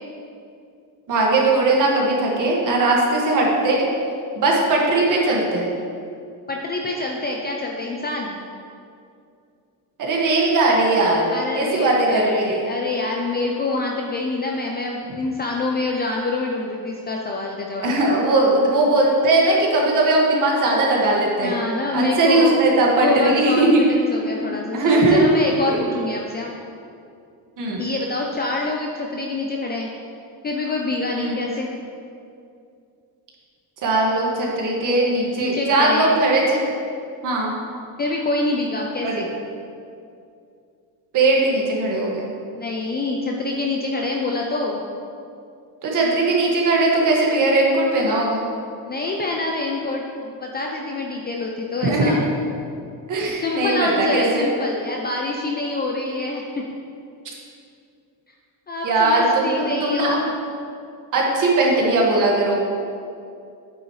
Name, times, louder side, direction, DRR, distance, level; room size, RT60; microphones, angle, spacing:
voice 1, 1.1-3.9 4.4-5.7 10.0-12.6 17.8-21.5 21.9-23.8 24.5-25.3 25.7-25.8 27.6-27.8 31.1-31.4 33.8-36.6 37.2-37.5 39.0-39.2 41.1-42.3 45.8-48.4 51.8-52.1 53.1-54.4 58.8-60.1 61.1-62.6, right 2 dB, 45° right, -2 dB, 1.9 m, -19 dB
voice 2, 6.5-8.3 11.3-17.9 21.4-22.7 23.0-26.5 27.8-29.9 30.4-31.7 35.4-36.2 38.0-39.3 42.6-44.8 48.9-52.2 53.3-56.4 58.7-60.3, left 2 dB, 20° left, 0 dB, 0.5 m, -26 dB
10.5 x 9.0 x 3.2 m, 2.5 s
cardioid pair, 175°, 45 cm